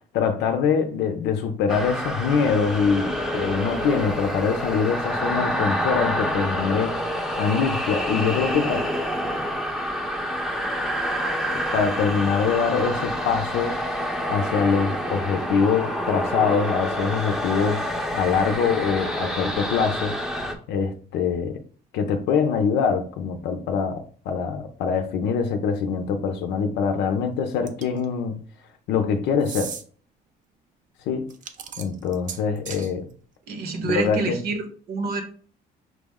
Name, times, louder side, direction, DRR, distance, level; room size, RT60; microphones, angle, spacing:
voice 1, 0.1-7.0 7.4-8.8 11.5-20.2 20.7-21.6 21.9-28.4 28.9-29.7 31.1-31.3 31.8-33.1 33.8-34.4, left 6 dB, 85° left, 0.6 m, -24 dB
sound 1, 1.7-20.5, equal, ahead, 0.7 m, -27 dB
sound 2, 27.7-28.1 29.4-29.8 31.3-32.9, right 7 dB, 50° right, 0.5 m, -36 dB
voice 2, 33.5-35.2, right 3 dB, 65° right, 1.1 m, -27 dB
6.0 x 2.0 x 3.5 m
cardioid pair, 110°, 17 cm